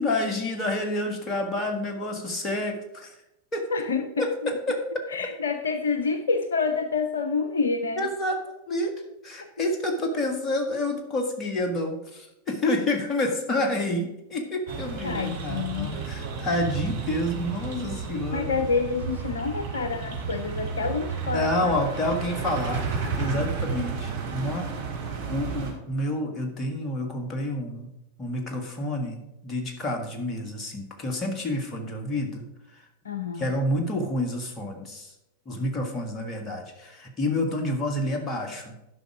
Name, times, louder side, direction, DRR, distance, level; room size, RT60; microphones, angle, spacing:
voice 1, 0.0-3.1 3.5-3.7 4.2-4.8 8.0-8.4 8.7-8.9 9.2-18.6 21.2-24.7 25.3-27.9 28.2-32.4 33.4-35.1 35.4-38.9, left 1 dB, 25° left, 4 dB, 1.8 m, -29 dB
voice 2, 3.7-4.5 5.1-8.1 9.4-9.5 15.0-16.0 18.3-21.8 33.0-33.5, left 4 dB, 70° left, 8 dB, 0.6 m, -28 dB
sound 1, 14.7-25.7, right 5 dB, 55° right, 2.4 m, -32 dB
11.5 x 5.6 x 4.9 m, 0.92 s
figure-of-eight pair, 90°, 0 cm